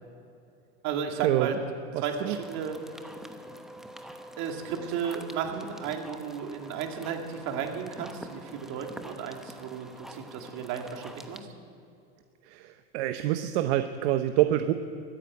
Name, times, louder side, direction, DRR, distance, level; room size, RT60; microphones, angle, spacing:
voice 1, 0.8-1.6 2.0-2.8 4.4-11.4, right 7 dB, 60° right, 3 dB, 2.4 m, -34 dB
voice 2, 1.9-2.4 12.5-14.7, right 13 dB, 75° right, 9 dB, 0.8 m, -26 dB
sound 1, 2.3-11.4, equal, ahead, 1.0 m, -46 dB
14.0 x 10.0 x 9.5 m, 2.6 s
supercardioid pair, 110°, 33 cm